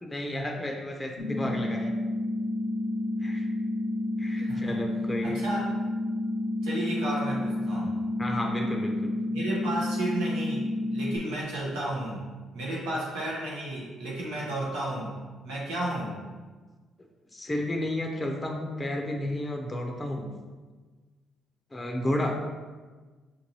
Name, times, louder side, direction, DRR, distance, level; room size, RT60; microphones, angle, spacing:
voice 1, 0.0-1.9 3.2-3.5 4.2-5.4 8.2-9.1 17.3-20.3 21.7-22.3, left 1 dB, 15° left, 2 dB, 0.6 m, -32 dB
sound 1, 1.2-11.2, left 1 dB, 75° left, 0.5 m, -30 dB
voice 2, 4.4-4.8 5.2-5.6 6.6-7.9 9.3-12.2 12.5-15.1 15.4-16.2, right 1 dB, 90° right, -5 dB, 1.1 m, -32 dB
4.5 x 2.6 x 3.0 m, 1.3 s
supercardioid pair, 65°, 0 cm